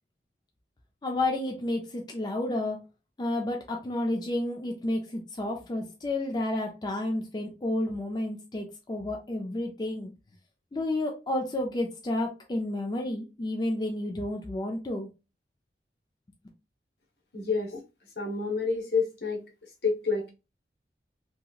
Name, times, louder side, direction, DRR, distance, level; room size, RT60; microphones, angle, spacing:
voice 1, 1.0-2.8 3.2-10.1 10.7-15.1, left 1 dB, 25° left, 0.4 m, -31 dB
voice 2, 17.3-17.8 18.2-19.4 19.8-20.3, left 4 dB, 70° left, 1.0 m, -28 dB
2.8 x 2.7 x 2.3 m
head